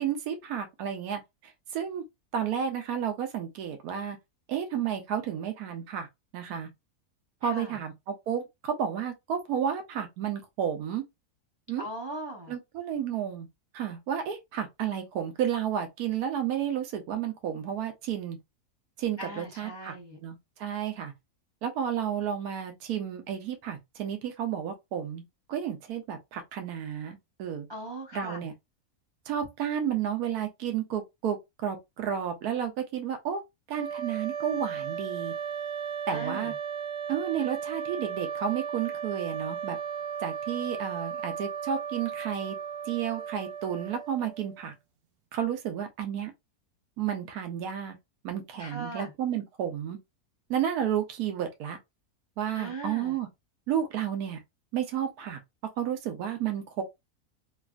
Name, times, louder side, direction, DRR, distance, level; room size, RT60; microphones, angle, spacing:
voice 1, 0.0-2.0 2.3-4.2 4.5-6.1 6.3-6.7 7.4-11.0 11.7-11.9 12.5-13.5 13.7-18.4 19.0-19.9 20.2-21.1 21.6-25.2 25.5-27.7 28.1-28.5 29.3-31.4 31.6-33.4 33.7-35.3 36.1-36.5 37.1-39.8 40.2-42.6 42.8-44.7 45.3-46.3 47.0-47.9 48.2-50.0 50.5-51.8 52.4-53.3 53.7-54.4 54.7-55.4 55.8-56.8, right 9 dB, 85° right, 1.2 m, -32 dB
voice 2, 7.4-7.8 11.8-12.5 19.2-20.2 27.7-28.4 36.1-36.5 48.6-49.1 52.5-53.1, right 2 dB, 40° right, 0.4 m, -39 dB
sound 1, 33.7-44.7, right 7 dB, 65° right, 0.9 m, -36 dB
3.2 x 2.4 x 2.4 m
omnidirectional pair, 1.6 m